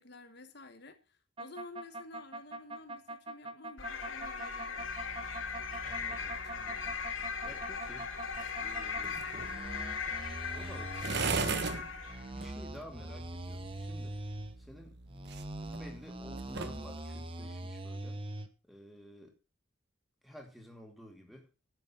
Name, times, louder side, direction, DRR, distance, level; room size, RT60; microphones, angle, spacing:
voice 1, 0.0-4.9, left 2 dB, 55° left, 1.3 m, -51 dB
sound 1, 1.4-9.0 9.4-11.6 12.0-14.6 15.1-18.5, right 1 dB, 25° right, 1.1 m, -42 dB
sound 2, 3.8-12.4, left 5 dB, 80° left, 2.4 m, -39 dB
sound 3, 4.8-16.9, right 4 dB, 55° right, 1.2 m, -42 dB
voice 2, 5.8-8.1 8.6-9.2 10.5-14.2 14.6-15.0 15.6-18.2 18.6-19.3 20.2-21.5, equal, ahead, 2.8 m, -52 dB
11.0 x 8.7 x 5.8 m
head